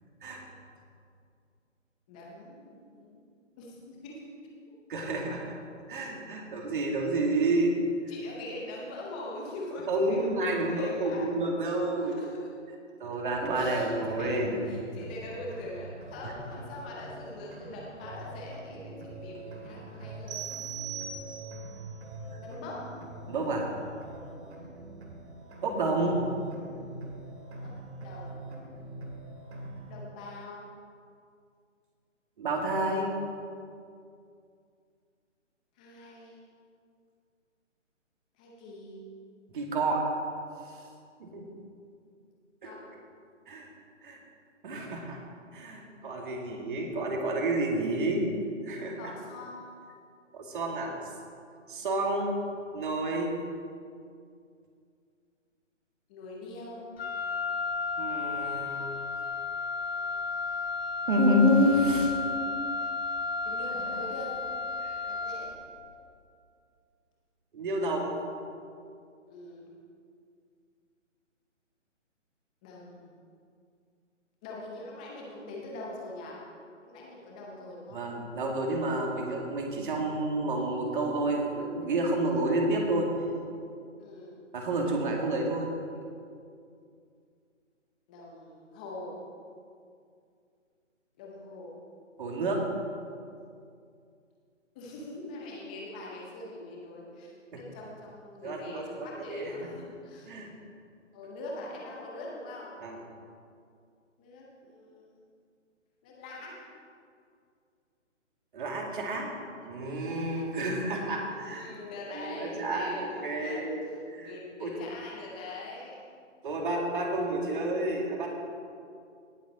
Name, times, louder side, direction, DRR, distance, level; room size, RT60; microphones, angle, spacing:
voice 1, 2.1-3.2 3.6-4.2 4.7-4.8 8.1-11.3 12.2-12.3 13.5-20.5 22.4-22.8 24.5-24.7 27.6-27.7 28.0-28.4 29.9-30.6 35.8-36.4 38.4-39.0 42.6-42.8 49.0-49.7 56.1-56.8 63.4-64.3 65.1-65.5 69.3-69.7 72.6-73.2 74.4-76.4 76.8-78.1 84.0-84.4 86.8-86.9 88.1-89.1 91.2-91.7 94.7-100.3 101.1-102.7 104.2-105.2 106.0-106.5 111.2-113.6 113.9-116.0, left 2 dB, 5° left, -3 dB, 0.6 m, -43 dB
voice 2, 4.9-5.5 5.9-7.8 9.9-12.2 13.0-14.5 16.2-16.3 23.3-23.7 25.6-26.2 32.4-33.1 39.5-40.0 40.7-40.8 41.2-41.5 42.6-42.8 43.5-43.7 44.0-44.2 44.6-45.2 45.5-48.3 48.6-49.1 50.3-50.9 51.7-52.4 52.7-53.4 58.0-59.0 61.1-62.1 63.8-63.9 64.8-64.9 67.5-68.2 77.9-83.1 84.5-85.7 92.2-92.7 97.5-97.6 98.4-99.7 100.3-100.5 102.8-103.0 108.5-109.3 109.6-111.7 112.1-114.3 114.6-114.8 116.4-118.3, right 1 dB, 40° right, 0 dB, 2.3 m, -29 dB
sound 1, 14.0-30.0, right 2 dB, 55° right, 2.5 m, -44 dB
sound 2, 20.3-21.8, right 8 dB, 15° right, 2.7 m, -39 dB
Wind instrument woodwind instrument, 57.0-65.7, left 4 dB, 50° left, 1.2 m, -33 dB
18.0 x 7.5 x 4.2 m, 2.3 s
figure-of-eight pair, 145°, 38 cm